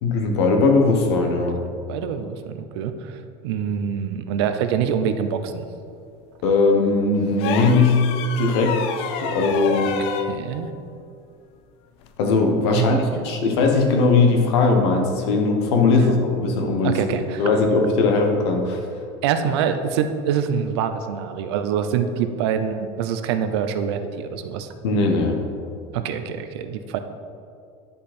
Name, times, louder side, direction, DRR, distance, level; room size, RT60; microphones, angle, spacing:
voice 1, 0.0-1.6 6.4-8.0 8.4-9.9 12.2-18.8 24.8-25.3, left 3 dB, 80° left, 3 dB, 1.3 m, -19 dB
voice 2, 1.9-5.6 10.3-10.7 12.7-13.3 16.0-16.2 16.8-17.5 19.2-24.7 25.9-27.0, right 8 dB, 85° right, 9 dB, 0.7 m, -25 dB
sound 1, 7.4-10.3 12.0-12.2, left 6 dB, 45° left, 0.5 m, -29 dB
10.0 x 5.3 x 4.4 m, 2.4 s
cardioid pair, 170°, 13 cm